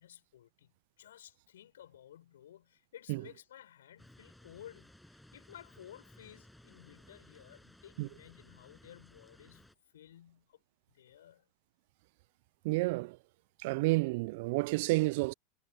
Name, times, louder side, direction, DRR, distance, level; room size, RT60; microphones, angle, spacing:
voice 1, 0.0-10.6 10.9-11.5, left 11 dB, 75° left, 5.4 m, -55 dB
sound 1, 4.0-9.7, left 1 dB, 5° left, 7.9 m, -59 dB
voice 2, 12.6-13.2 13.6-15.3, right 23 dB, 60° right, 0.3 m, -30 dB
hypercardioid pair, 95°, 0 cm